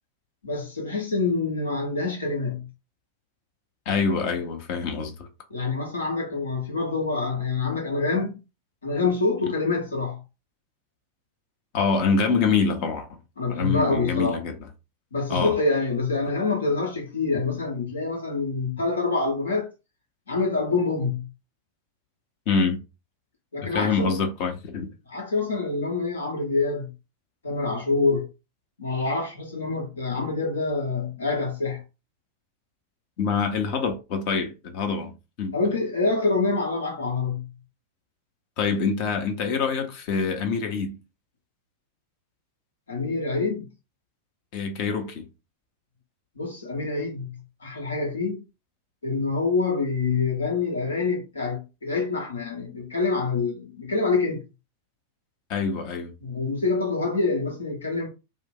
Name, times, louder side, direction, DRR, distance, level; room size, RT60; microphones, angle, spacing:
voice 1, 0.4-2.7 5.5-8.4 8.8-10.2 13.4-14.4 15.1-19.7 20.3-21.3 23.5-24.2 25.1-26.9 27.4-28.3 28.8-31.8 35.5-37.5 42.9-43.7 46.4-48.4 49.0-54.4 56.2-58.1, left 3 dB, 70° left, 1.1 m, -26 dB
voice 2, 3.9-5.3 11.7-13.2 13.5-14.5 15.3-15.5 22.5-22.8 23.6-24.9 33.2-35.1 35.4-35.5 38.6-40.9 44.5-45.3 55.5-56.1, left 5 dB, 45° left, 0.8 m, -25 dB
2.5 x 2.1 x 3.9 m
figure-of-eight pair, 90°, 0 cm